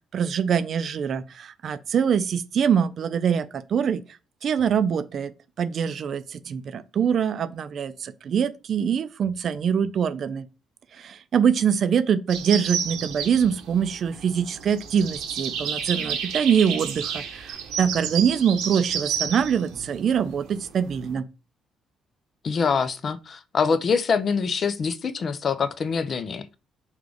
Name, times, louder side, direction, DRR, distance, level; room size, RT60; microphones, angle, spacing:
voice 1, 0.1-4.0 4.4-5.3 5.6-10.5 10.9-21.3, right 7 dB, 60° right, 0.4 m, -24 dB
sound 1, 12.3-21.1, right 7 dB, 80° right, 0.8 m, -31 dB
voice 2, 22.4-26.6, left 5 dB, 50° left, 0.5 m, -25 dB
3.6 x 2.4 x 3.4 m
supercardioid pair, 60°, 0 cm